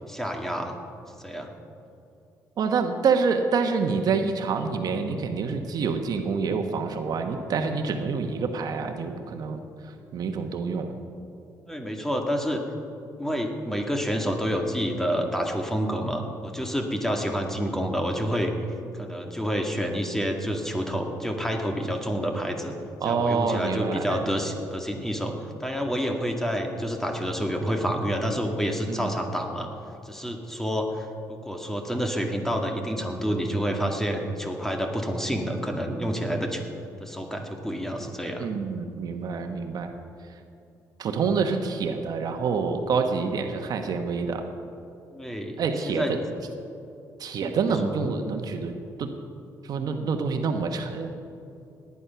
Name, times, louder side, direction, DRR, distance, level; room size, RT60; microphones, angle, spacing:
voice 1, 0.1-0.8 1.2-1.5 11.7-12.6 13.2-18.5 18.9-22.7 23.0-29.7 30.1-36.6 37.0-38.5 45.1-45.6 45.9-46.1 47.8-48.0, equal, 5° left, 3 dB, 2.0 m, -28 dB
voice 2, 2.6-9.6 10.1-10.9 23.0-24.3 28.9-29.1 38.4-39.9 41.0-44.5 45.6-46.2 47.2-48.7 49.0-49.1 49.6-51.1, right 5 dB, 65° right, 5 dB, 1.2 m, -27 dB
18.0 x 9.8 x 5.8 m, 2.6 s
cardioid pair, 80°, 7 cm